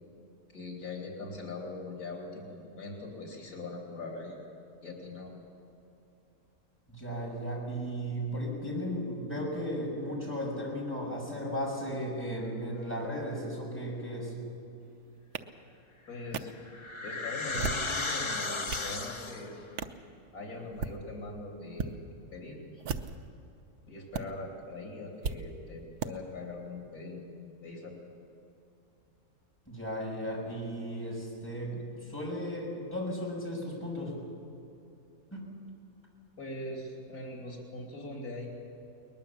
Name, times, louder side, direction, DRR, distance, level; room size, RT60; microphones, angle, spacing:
voice 1, 0.5-4.4 4.8-5.3 16.1-16.5 17.0-19.5 20.3-22.0 22.3-22.8 23.9-27.2 27.6-28.0 36.4-38.5, left 2 dB, 75° left, 0 dB, 3.6 m, -41 dB
voice 2, 6.9-14.3 29.7-31.8 32.1-34.2 35.3-35.5, equal, 10° left, -3 dB, 6.2 m, -35 dB
sound 1, 15.3-15.4 16.3-16.4 17.4-17.9 18.4-18.9 19.8-20.0 20.6-21.0 21.7-21.9 22.8-23.3 24.1-24.2 25.2-25.4 26.0-26.1, right 5 dB, 85° right, 1.4 m, -35 dB
sound 2, 16.2-19.6, left 3 dB, 25° left, 0.7 m, -35 dB
22.0 x 20.0 x 7.3 m, 2.8 s
omnidirectional pair, 1.6 m